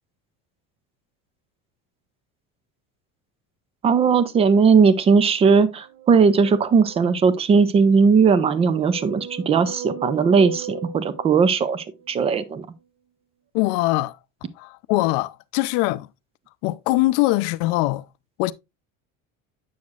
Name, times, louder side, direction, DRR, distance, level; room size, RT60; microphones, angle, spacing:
voice 1, 3.8-12.7, right 5 dB, 15° right, 0.3 m, -18 dB
sound 1, 5.7-7.4 8.2-12.1, right 5 dB, 60° right, 1.2 m, -37 dB
voice 2, 13.5-14.2 14.6-16.1 16.6-18.1 18.4-18.5, left 19 dB, 65° left, 0.5 m, -22 dB
8.4 x 6.3 x 2.4 m
cardioid pair, 165°, 38 cm